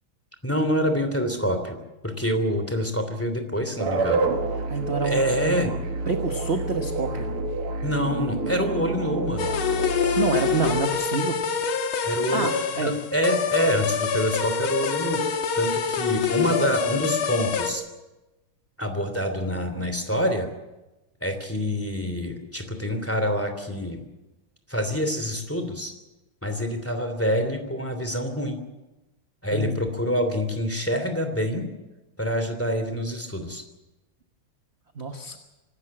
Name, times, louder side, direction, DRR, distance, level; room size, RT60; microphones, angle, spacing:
voice 1, 0.4-1.8 2.0-4.3 5.0-5.7 7.8-9.6 12.0-12.5 12.8-17.8 18.8-20.5 21.2-24.0 24.7-25.9 26.4-28.6 29.4-31.7 32.2-33.6, equal, 5° left, 6 dB, 2.8 m, -26 dB
sound 1, 3.8-10.8, right 3 dB, 80° right, 2.6 m, -28 dB
voice 2, 4.7-5.7 6.1-7.3 10.2-11.4 12.3-12.9 29.5-29.8 34.9-35.4, right 4 dB, 35° right, 5 dB, 1.3 m, -28 dB
sound 2, 9.4-17.7, left 6 dB, 75° left, 2.2 m, -26 dB
26.0 x 13.0 x 8.8 m, 1.1 s
omnidirectional pair, 2.4 m